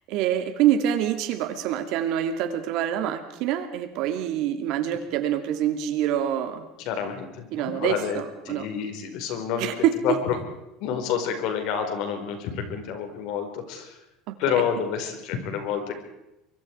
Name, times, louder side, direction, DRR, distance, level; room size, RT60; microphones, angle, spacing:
voice 1, 0.1-6.6 7.5-8.7 9.6-10.2 14.3-14.4, right 10 dB, 60° right, 7 dB, 2.8 m, -26 dB
voice 2, 6.8-9.7 10.0-10.4 10.8-14.0 14.4-15.9, left 8 dB, 60° left, 6 dB, 4.7 m, -28 dB
24.0 x 23.5 x 4.7 m, 0.91 s
cardioid pair, 150°, 0 cm